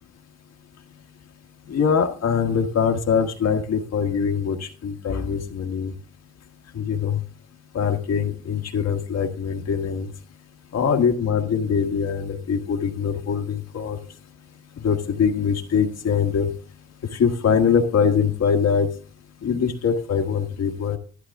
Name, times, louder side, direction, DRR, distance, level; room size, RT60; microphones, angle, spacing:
voice 1, 1.7-5.9 6.7-7.2 7.7-10.1 10.7-14.0 14.8-16.5 17.1-18.9 19.4-21.0, left 6 dB, 55° left, 3 dB, 1.5 m, -23 dB
12.0 x 11.0 x 3.5 m, 0.40 s
cardioid pair, 90°, 30 cm